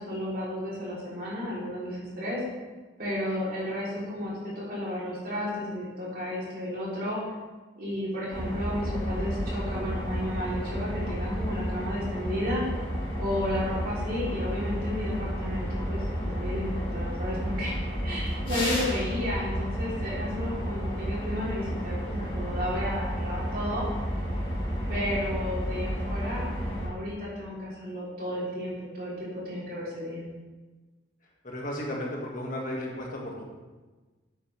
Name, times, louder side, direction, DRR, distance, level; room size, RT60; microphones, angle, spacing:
voice 1, 0.0-2.4 3.0-7.2 7.8-12.6 13.2-17.8 18.0-23.9 24.9-26.5 26.8-30.3, left 1 dB, 50° right, -6 dB, 3.7 m, -33 dB
sound 1, 8.3-26.9, equal, 30° left, 2.9 m, -31 dB
voice 2, 31.4-33.4, left 1 dB, 45° left, -2 dB, 2.1 m, -34 dB
11.5 x 9.1 x 3.5 m, 1.3 s
head